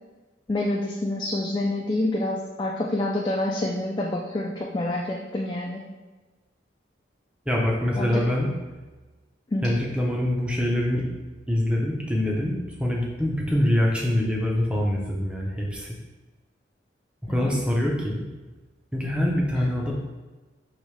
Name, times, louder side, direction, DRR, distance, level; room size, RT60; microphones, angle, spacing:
voice 1, 0.5-5.8 8.0-8.2 9.5-9.6 17.3-17.5, left 1 dB, 25° left, -1 dB, 0.3 m, -27 dB
voice 2, 7.5-8.5 9.6-11.2 11.5-15.9 17.3-18.2 18.9-19.9, left 1 dB, 5° right, -2 dB, 0.7 m, -24 dB
5.0 x 3.1 x 3.2 m, 1.2 s
head